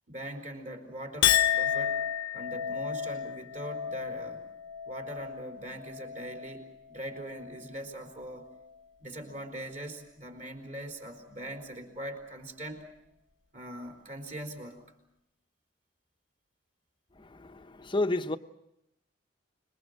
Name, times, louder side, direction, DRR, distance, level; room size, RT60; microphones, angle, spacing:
voice 1, 0.1-2.0 2.3-4.5 4.8-8.5 9.0-12.9 13.5-14.8, right 1 dB, 40° right, 4.1 m, -41 dB
Chink clink, 1.2-7.8 8.2-8.7, left 10 dB, 80° left, 1.0 m, -32 dB
voice 2, 17.2-18.4, left 2 dB, 25° left, 0.8 m, -31 dB
26.0 x 23.0 x 6.6 m
head